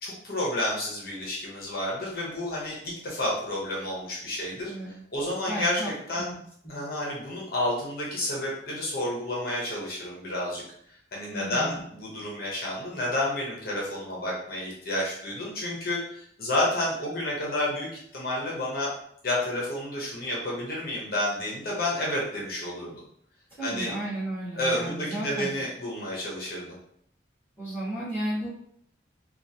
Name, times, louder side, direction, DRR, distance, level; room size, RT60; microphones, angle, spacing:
voice 1, 0.0-6.3 6.7-10.6 11.1-18.9 19.2-23.0 23.6-23.9 24.5-26.8, left 1 dB, 50° left, -5 dB, 0.8 m, -30 dB
voice 2, 5.5-5.9 6.2-6.3 11.3-11.8 23.6-25.5 27.6-28.5, right 1 dB, 15° left, -13 dB, 1.2 m, -33 dB
2.9 x 2.3 x 2.7 m, 0.68 s
head